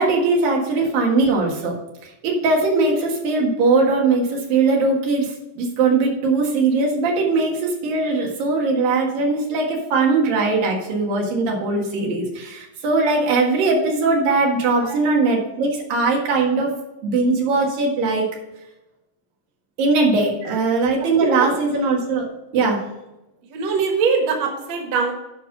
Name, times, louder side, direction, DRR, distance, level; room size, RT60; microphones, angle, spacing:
voice 1, 0.0-1.8 2.2-16.7 17.0-18.3 19.8-22.3 22.5-22.8, right 3 dB, 90° right, -1 dB, 3.5 m, -20 dB
voice 2, 20.2-20.6 21.0-21.5 23.4-25.1, right 5 dB, 55° right, 2 dB, 2.3 m, -23 dB
10.0 x 5.4 x 5.3 m, 0.98 s
omnidirectional pair, 3.9 m